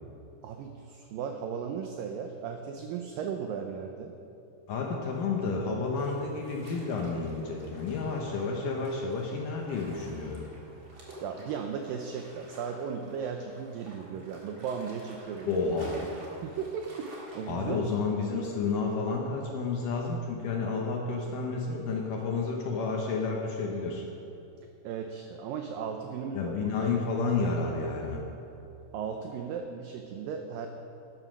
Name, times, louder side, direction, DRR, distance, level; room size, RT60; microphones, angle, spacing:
voice 1, 0.4-4.1 11.2-15.7 16.0-16.1 16.4-17.9 24.8-27.0 28.9-30.7, right 6 dB, 90° right, 4 dB, 2.0 m, -36 dB
voice 2, 4.7-10.5 15.5-16.0 17.5-24.1 26.3-28.2, left 4 dB, 70° left, 0 dB, 2.1 m, -31 dB
sound 1, 6.0-17.5, right 1 dB, 35° right, 2.4 m, -50 dB
12.5 x 9.6 x 6.1 m, 2.9 s
omnidirectional pair, 4.8 m